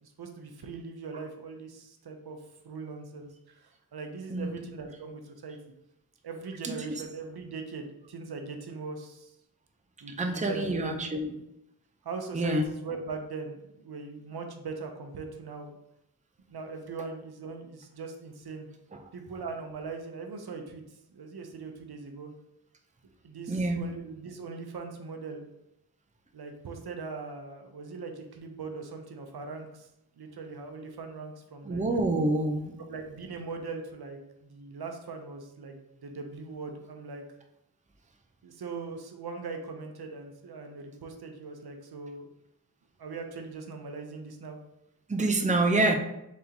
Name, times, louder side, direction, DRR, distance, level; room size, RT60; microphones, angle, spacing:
voice 1, 0.0-2.4 2.6-5.6 6.2-9.3 10.0-11.3 12.0-15.7 16.5-18.7 19.1-20.8 21.1-22.3 23.2-25.4 26.3-29.9 30.2-31.9 32.8-37.2 38.4-42.3 43.0-44.6, right 4 dB, 80° right, 4 dB, 0.7 m, -40 dB
voice 2, 10.2-11.3 12.3-12.6 23.5-23.9 31.7-32.7 45.1-45.9, right 2 dB, 20° right, 3 dB, 0.6 m, -27 dB
4.1 x 3.7 x 2.8 m, 0.85 s
wide cardioid pair, 55°, 38 cm